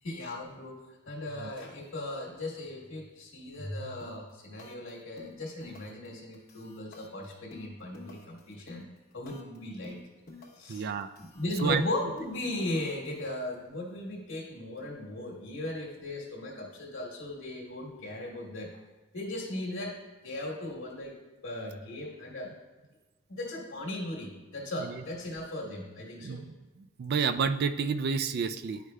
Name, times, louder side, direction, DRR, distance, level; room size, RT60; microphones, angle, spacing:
voice 1, 0.0-0.7 1.1-8.9 9.1-10.0 10.5-10.9 11.2-18.7 19.1-20.0 20.2-21.2 21.4-22.5 23.3-26.4, left 1 dB, 80° left, -5 dB, 1.2 m, -37 dB
sound 1, 4.0-4.3 4.6-4.9 5.2-6.1 6.3-9.6 9.8-10.7 11.0-13.2, left 3 dB, 50° left, 0.9 m, -50 dB
voice 2, 10.7-11.1 11.6-11.8 24.8-25.0 26.2-28.8, right 6 dB, 50° right, 10 dB, 0.3 m, -30 dB
10.5 x 4.9 x 2.2 m, 1.2 s
head